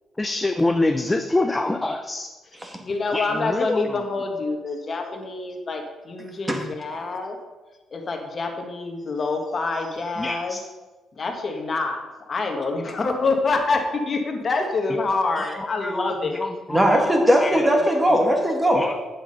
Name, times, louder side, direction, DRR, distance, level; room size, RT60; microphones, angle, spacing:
voice 1, 0.2-2.3 3.1-4.0 10.2-10.6 15.6-17.6 18.7-19.1, left 2 dB, 15° left, 7 dB, 0.6 m, -26 dB
voice 2, 2.9-7.4 7.9-10.6 11.2-12.0 12.3-16.5, left 3 dB, 40° left, 3 dB, 1.6 m, -26 dB
voice 3, 16.7-18.8, equal, 15° right, 2 dB, 2.0 m, -19 dB
8.8 x 7.2 x 5.4 m, 1.2 s
cardioid pair, 90°, 0 cm